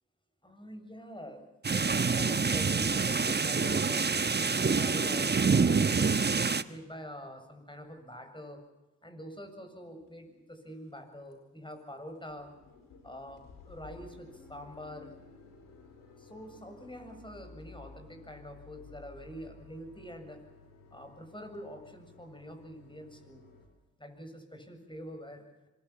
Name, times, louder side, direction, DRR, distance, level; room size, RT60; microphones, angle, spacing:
voice 1, 0.4-4.1 4.6-8.6 9.0-12.5 13.0-15.2 16.2-20.4 20.9-23.4 24.0-25.4, equal, 15° left, 6 dB, 7.3 m, -46 dB
sound 1, 1.6-6.6, right 4 dB, 30° right, 1.2 m, -26 dB
sound 2, 10.0-10.1 10.6-11.0 11.3-11.4 11.7-11.8 12.1-23.6, left 4 dB, 90° left, 4.5 m, -54 dB
26.0 x 21.0 x 7.3 m, 1.1 s
supercardioid pair, 45°, 32 cm